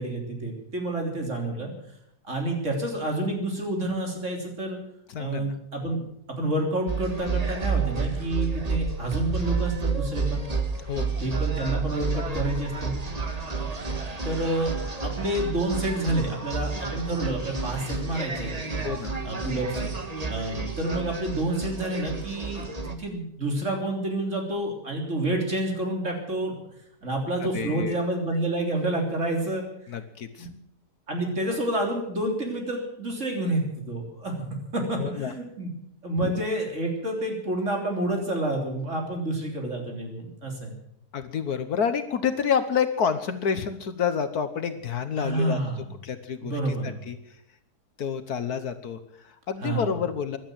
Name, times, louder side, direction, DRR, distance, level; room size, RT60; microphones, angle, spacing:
voice 1, 0.0-1.7 2.2-4.8 5.2-6.0 6.3-10.4 11.2-13.0 14.2-14.7 15.0-18.8 19.2-19.9 20.3-26.5 27.0-29.7 30.4-30.5 31.1-34.3 34.7-35.7 36.0-40.8 45.2-45.9 46.4-47.0 49.6-50.0, right 1 dB, 40° right, 2 dB, 3.8 m, -29 dB
voice 2, 5.1-5.5 10.8-11.1 18.8-19.1 27.5-28.0 29.9-30.5 35.0-35.3 36.2-36.3 41.1-45.6 46.0-46.5 46.8-47.2 48.0-50.4, left 7 dB, 65° left, 10 dB, 1.5 m, -28 dB
sound 1, 6.9-22.9, right 4 dB, 25° right, 1.4 m, -30 dB
16.0 x 11.5 x 7.5 m, 0.75 s
omnidirectional pair, 1.9 m